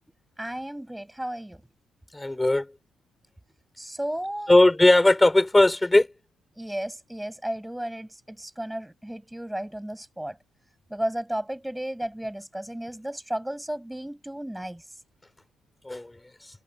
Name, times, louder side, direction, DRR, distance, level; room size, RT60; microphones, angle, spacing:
voice 1, 0.4-1.6 3.8-4.5 6.6-10.4 10.9-14.8, right 1 dB, 5° right, 6.0 m, -33 dB
voice 2, 2.1-2.7 4.5-6.1 15.8-16.2, left 2 dB, 15° left, 3.4 m, -18 dB
cardioid pair, 90°, 0 cm